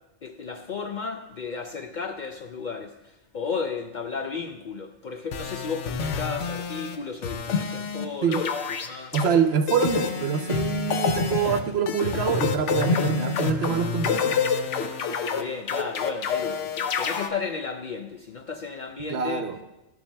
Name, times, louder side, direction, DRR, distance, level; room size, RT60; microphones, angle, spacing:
voice 1, 0.2-8.5 8.8-9.2 15.3-19.5, left 5 dB, 60° left, 0.5 m, -34 dB
sound 1, 5.3-7.0 7.2-8.1 8.3-9.3 9.7-17.3, left 6 dB, 80° left, 1.0 m, -27 dB
voice 2, 9.1-14.4 19.1-19.6, right 7 dB, 65° right, 0.9 m, -25 dB
13.0 x 7.1 x 2.2 m
omnidirectional pair, 1.2 m